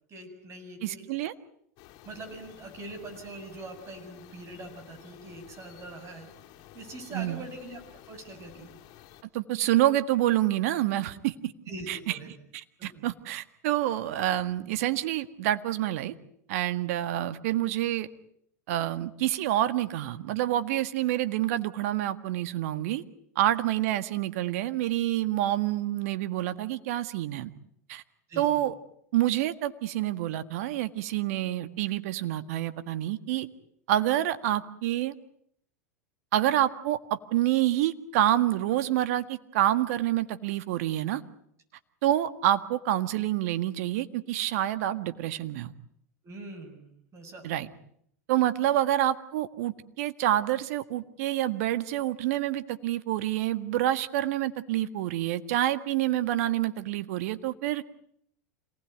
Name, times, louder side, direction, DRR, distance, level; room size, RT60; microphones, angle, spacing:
voice 1, 0.1-1.1 2.0-6.3 6.7-8.8 11.7-12.3 12.8-13.1 28.3-28.6 46.2-47.5, right 2 dB, 35° right, 6 dB, 7.7 m, -43 dB
voice 2, 0.8-1.3 7.1-7.4 9.3-11.5 11.9-12.2 12.8-16.1 16.5-18.1 18.7-23.0 23.4-27.5 27.9-28.0 28.4-28.7 29.1-33.5 33.9-35.1 36.3-41.2 42.0-45.7 47.4-47.7 48.3-57.8, right 13 dB, 65° right, 12 dB, 1.7 m, -27 dB
sound 1, 1.8-9.2, left 13 dB, 50° left, 3.3 m, -52 dB
27.5 x 19.5 x 9.4 m, 0.69 s
hypercardioid pair, 95°, 9 cm